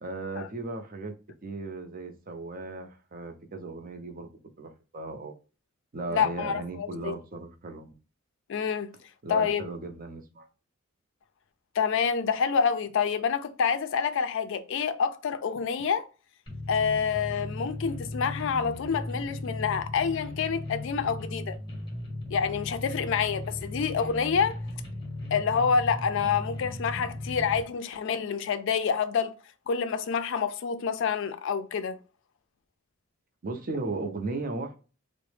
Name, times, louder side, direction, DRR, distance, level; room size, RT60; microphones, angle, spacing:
voice 1, 0.0-1.1 1.4-4.3 4.6-5.3 5.9-7.9 9.2-10.5 33.4-34.8, right 2 dB, 45° right, 0.6 m, -36 dB
voice 2, 6.1-7.1 8.5-8.9 9.3-9.6 11.8-16.1 16.7-21.6 22.3-24.6 25.3-29.3 29.7-32.0, left 6 dB, 60° left, 0.4 m, -27 dB
sound 1, 16.5-27.6, left 2 dB, 25° left, 0.7 m, -37 dB
3.8 x 2.1 x 3.2 m
head